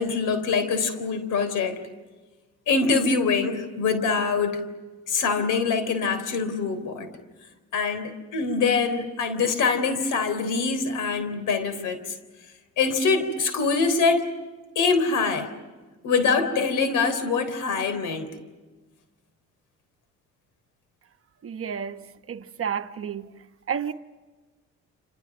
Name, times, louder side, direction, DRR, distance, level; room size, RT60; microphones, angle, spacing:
voice 1, 0.0-1.8 2.7-4.6 5.1-7.1 7.7-12.2 12.8-14.3 14.8-15.5 16.0-18.4, left 4 dB, 85° left, 3.7 m, -24 dB
voice 2, 21.4-23.3 23.7-23.9, right 7 dB, 50° right, 1.1 m, -31 dB
28.0 x 28.0 x 6.1 m
cardioid pair, 90°, 30 cm